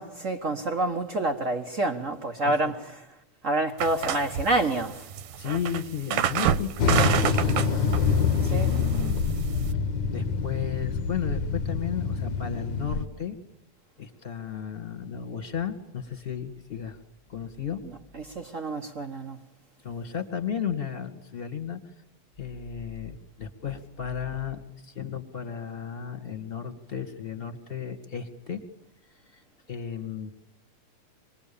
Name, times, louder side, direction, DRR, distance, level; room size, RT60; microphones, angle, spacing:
voice 1, 0.0-2.8 3.4-5.1 8.5-8.7 18.1-19.4, right 2 dB, 65° right, 0.7 m, -28 dB
sound 1, 3.8-9.7, right 9 dB, 90° right, 2.6 m, -29 dB
voice 2, 5.4-9.3 10.1-13.4 14.0-17.0 17.3-17.8 19.8-21.8 22.4-28.6 29.3-30.3, left 8 dB, 20° left, 1.9 m, -34 dB
sound 2, 6.8-13.1, left 5 dB, 60° left, 1.2 m, -26 dB
26.5 x 22.0 x 7.2 m
omnidirectional pair, 3.6 m